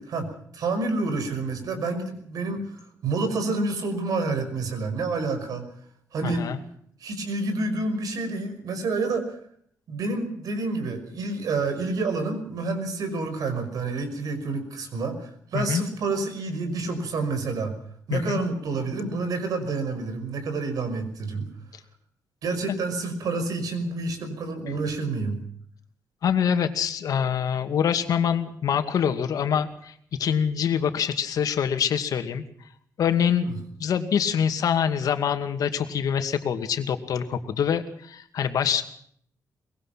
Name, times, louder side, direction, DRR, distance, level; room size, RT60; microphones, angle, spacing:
voice 1, 0.0-2.7 3.0-5.6 6.1-6.5 7.0-9.4 9.9-17.8 18.1-21.5 22.4-25.4 33.5-33.6, right 3 dB, 70° right, 8 dB, 5.6 m, -28 dB
voice 2, 6.2-6.6 15.5-15.8 18.1-18.4 26.2-29.9 30.2-32.4 33.0-33.5 33.8-38.8, left 8 dB, 70° left, 7 dB, 2.5 m, -25 dB
23.5 x 21.5 x 5.9 m, 0.64 s
wide cardioid pair, 140°, 6 cm